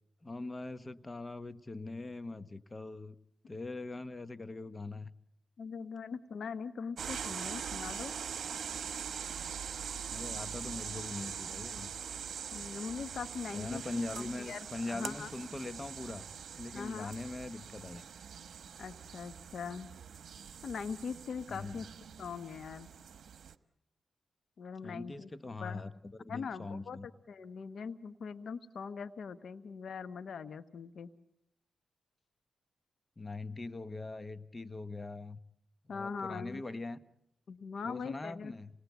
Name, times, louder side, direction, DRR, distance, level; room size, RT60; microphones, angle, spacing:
voice 1, 0.2-3.2 3.5-5.1 10.1-11.9 13.5-16.2 16.5-18.0 21.5-21.8 24.8-27.1 33.2-35.4 35.9-37.0 37.8-38.7, left 2 dB, 30° left, 13 dB, 1.1 m, -42 dB
voice 2, 5.6-8.1 12.5-13.8 14.1-15.3 16.7-17.1 18.8-19.9 20.6-21.9 22.2-22.9 24.6-25.3 25.6-25.8 26.3-27.0 27.3-31.1 35.9-36.6 37.5-38.5, left 5 dB, 70° left, 13 dB, 1.0 m, -41 dB
sound 1, 7.0-23.5, right 7 dB, 70° right, 1.1 m, -43 dB
28.0 x 20.0 x 8.1 m, 0.79 s
cardioid pair, 55°, 0 cm